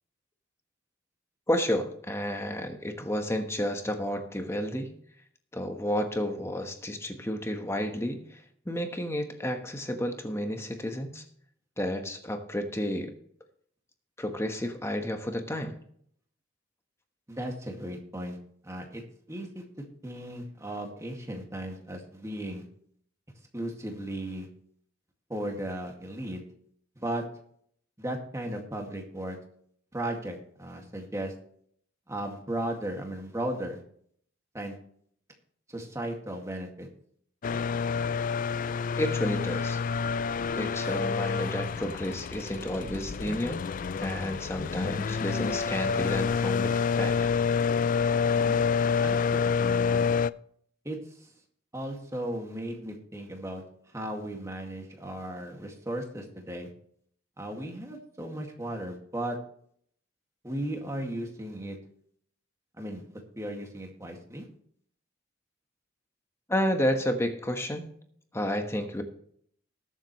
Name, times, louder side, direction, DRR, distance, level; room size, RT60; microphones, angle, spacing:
voice 1, 1.5-4.9 5.5-11.2 11.8-13.1 14.2-15.8 39.0-39.8 40.5-43.6 44.0-47.4 66.5-67.9 68.3-69.0, equal, 15° left, 5 dB, 1.1 m, -31 dB
voice 2, 17.3-18.4 18.6-19.0 19.3-22.6 23.5-24.5 25.3-26.4 27.0-27.2 28.0-29.4 29.9-31.3 32.1-33.8 34.5-34.8 35.7-36.9 48.3-48.6 49.0-50.1 50.8-51.3 51.7-56.7 57.4-59.4 60.4-61.8 62.8-64.5, right 1 dB, 15° right, 1 dB, 2.0 m, -36 dB
sound 1, 37.4-50.3, left 5 dB, 40° left, 0.3 m, -28 dB
20.0 x 7.4 x 3.1 m, 0.63 s
head